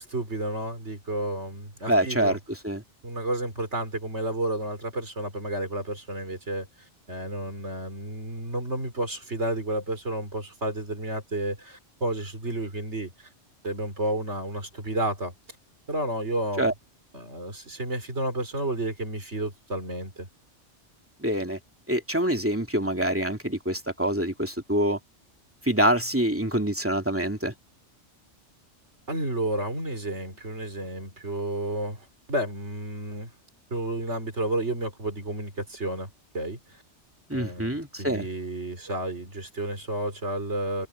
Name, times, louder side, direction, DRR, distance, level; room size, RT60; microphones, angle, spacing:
voice 1, 0.0-2.4 3.0-6.7 7.1-13.3 13.6-15.3 15.9-16.7 17.1-20.3 29.1-32.0 32.3-33.3 33.7-36.1 36.3-36.6 37.3-40.9, right 1 dB, 70° right, 4.5 m, -31 dB
voice 2, 1.9-2.4 2.6-2.8 16.6-16.7 21.2-21.6 21.9-25.0 25.6-27.5 37.3-38.3, right 1 dB, 10° right, 2.5 m, -25 dB
omnidirectional pair, 1.2 m